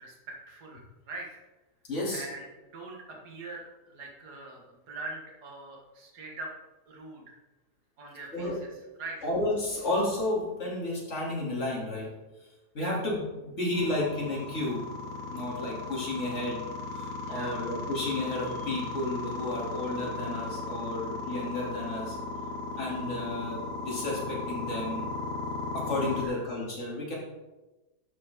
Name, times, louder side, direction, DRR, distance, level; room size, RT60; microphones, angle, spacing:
voice 1, 0.0-1.4 2.1-2.5 2.7-6.5 6.9-7.4 8.0-8.7 9.0-9.2 12.8-13.0 17.2-17.6 26.2-26.4, right 2 dB, 70° right, 0 dB, 2.2 m, -42 dB
voice 2, 1.8-2.2 8.3-8.5 9.2-12.1 12.7-14.8 15.3-16.6 16.9-22.2 22.7-25.1 25.7-27.1, left 2 dB, 45° left, -4 dB, 3.0 m, -32 dB
sound 1, 13.7-26.2, left 3 dB, 65° left, 2.0 m, -36 dB
12.0 x 6.4 x 3.6 m, 1.1 s
omnidirectional pair, 1.8 m